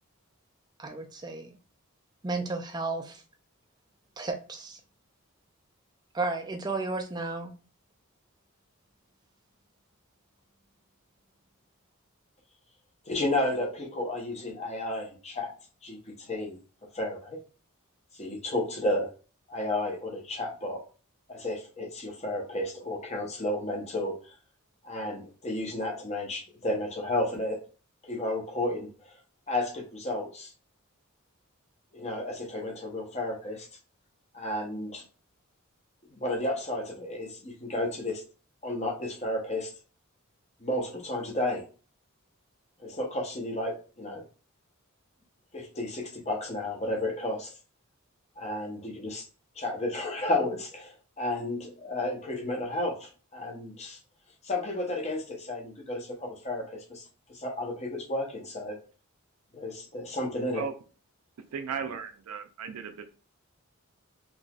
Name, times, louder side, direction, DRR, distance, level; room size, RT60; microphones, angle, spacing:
voice 1, 0.8-1.6 2.2-3.2 4.2-4.8 6.1-7.5, right 3 dB, 20° right, 5 dB, 0.3 m, -33 dB
voice 2, 13.1-15.5 15.8-16.6 16.9-17.4 18.1-19.1 19.5-20.8 21.3-24.2 24.8-27.6 28.0-29.1 29.5-30.5 31.9-33.7 34.3-35.0 36.1-38.2 38.6-39.7 40.6-41.7 42.8-44.2 45.5-47.5 48.4-49.3 49.6-54.0 54.4-57.0 57.3-58.8 59.5-60.6, left 1 dB, 30° left, 0 dB, 0.8 m, -32 dB
voice 3, 61.5-63.0, right 6 dB, 90° right, 8 dB, 0.4 m, -36 dB
3.9 x 2.9 x 2.3 m, 0.37 s
head